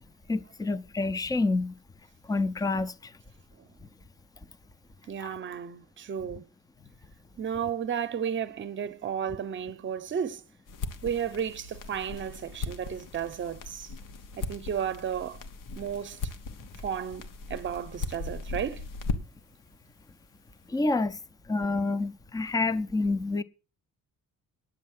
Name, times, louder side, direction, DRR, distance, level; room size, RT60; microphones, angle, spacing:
voice 1, 0.3-1.7 2.2-3.1 5.2-5.3 20.7-21.2 21.5-23.4, left 3 dB, 10° left, 0.5 m, -28 dB
voice 2, 5.1-6.4 7.4-10.4 11.0-13.9 14.4-15.4 15.7-16.2 16.8-18.8, right 8 dB, 35° right, 0.8 m, -33 dB
sound 1, 10.7-19.5, left 3 dB, 75° left, 1.2 m, -38 dB
9.5 x 7.3 x 7.4 m
cardioid pair, 160°, 32 cm